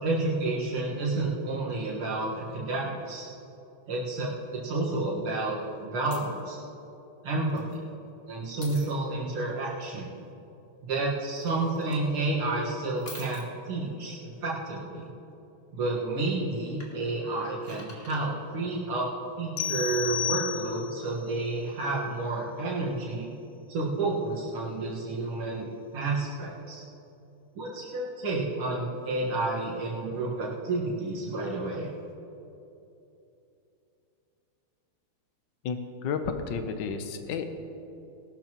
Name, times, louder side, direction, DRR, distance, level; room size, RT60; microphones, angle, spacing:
voice 1, 0.0-3.3 3.9-5.6 5.8-6.6 7.2-7.8 8.3-10.1 10.8-15.1 15.7-19.1 19.4-23.3 23.7-25.7 25.9-26.8 27.6-31.9, right 2 dB, 80° right, -5 dB, 2.5 m, -30 dB
sound 1, 6.1-6.4 7.4-7.8 8.6-8.9 11.3-12.1 13.0-13.5 16.8-18.2 20.1-20.2, left 1 dB, 30° left, 1.9 m, -47 dB
sound 2, 19.6-21.1, left 8 dB, 85° left, 1.5 m, -31 dB
voice 2, 35.6-36.2 36.5-37.4, left 6 dB, 60° left, 7 dB, 1.4 m, -32 dB
19.0 x 12.0 x 3.0 m, 2.8 s
omnidirectional pair, 2.4 m